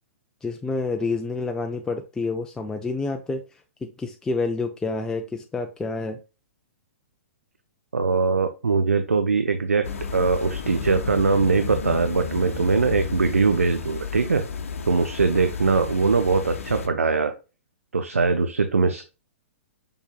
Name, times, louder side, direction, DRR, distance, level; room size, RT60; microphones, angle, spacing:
voice 1, 0.4-3.4 3.8-6.2, left 3 dB, 10° left, 4 dB, 0.4 m, -28 dB
voice 2, 7.9-9.9 10.1-14.4 14.9-17.3 17.9-19.0, right 4 dB, 90° right, 8 dB, 0.5 m, -21 dB
sound 1, 9.8-16.9, left 6 dB, 75° left, 0.7 m, -33 dB
5.5 x 4.3 x 2.3 m, 0.32 s
hypercardioid pair, 120°, 7 cm